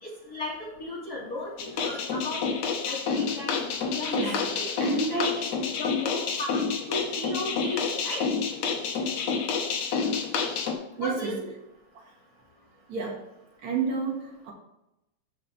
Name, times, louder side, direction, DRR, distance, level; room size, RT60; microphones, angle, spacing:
voice 1, 0.0-2.5 2.8-4.7 5.1-6.5 6.9-8.3 11.0-11.4, left 2 dB, 30° left, -5 dB, 2.9 m, -35 dB
sound 1, 1.6-10.7, left 5 dB, 80° left, 2.7 m, -29 dB
voice 2, 4.8-5.5 11.0-11.4 12.9-13.2 13.6-14.5, right 4 dB, 70° right, -1 dB, 3.0 m, -30 dB
14.5 x 5.4 x 3.4 m, 0.89 s
omnidirectional pair, 3.3 m